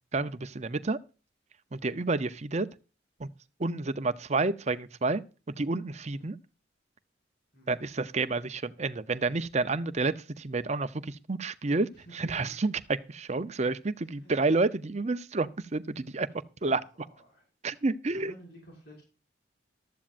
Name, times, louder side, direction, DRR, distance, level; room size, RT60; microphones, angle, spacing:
voice 1, 0.1-1.0 1.7-2.7 3.2-3.3 3.6-5.2 5.6-6.4 7.7-16.3 16.6-16.8 17.6-18.3, right 3 dB, 40° right, 0.7 m, -29 dB
voice 2, 11.9-12.3 14.0-14.3 16.7-17.5 18.1-19.0, right 1 dB, 60° left, 6.0 m, -52 dB
15.0 x 12.5 x 2.5 m
head